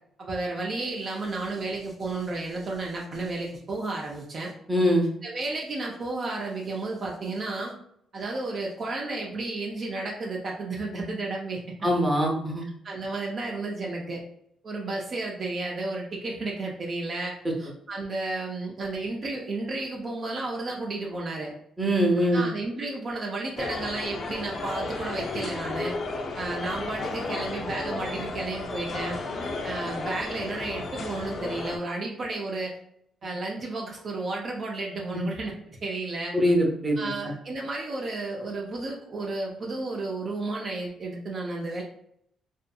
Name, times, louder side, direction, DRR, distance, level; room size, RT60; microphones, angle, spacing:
voice 1, 0.2-4.5 5.2-7.7 8.1-11.9 12.8-14.2 14.6-21.5 22.2-25.9 26.3-29.2 29.6-32.8 33.2-36.4 37.0-41.8, right 2 dB, 45° right, -2 dB, 0.5 m, -32 dB
voice 2, 4.7-5.1 11.8-12.7 21.8-22.4 35.1-35.2 36.3-37.1, equal, 15° right, -1 dB, 0.7 m, -23 dB
sound 1, 23.6-31.8, left 3 dB, 50° left, 0.4 m, -33 dB
2.6 x 2.5 x 2.3 m, 0.71 s
cardioid pair, 90°, 0 cm